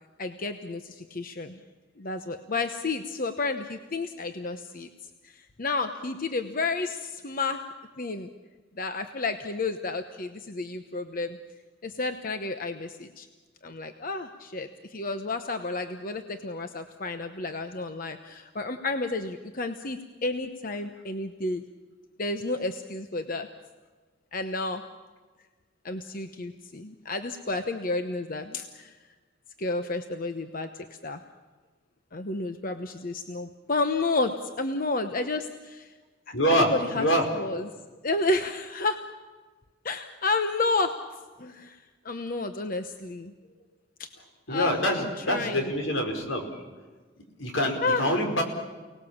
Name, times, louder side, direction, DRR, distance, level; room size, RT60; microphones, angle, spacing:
voice 1, 0.2-1.6 2.0-4.9 5.2-7.6 8.0-8.3 8.8-11.4 11.8-13.3 13.6-21.6 22.2-23.5 24.3-24.8 25.8-29.0 29.6-30.7 31.0-31.2 32.1-35.9 36.3-37.1 37.3-37.7 38.0-39.1 39.8-41.0 41.4-41.8 42.0-43.3 44.0-44.1 44.5-45.7 47.8-48.1, left 3 dB, 45° left, 7 dB, 1.0 m, -31 dB
voice 2, 36.3-37.3 44.5-46.6 47.4-48.4, equal, 85° left, 3 dB, 4.9 m, -25 dB
29.5 x 19.0 x 7.2 m, 1.4 s
head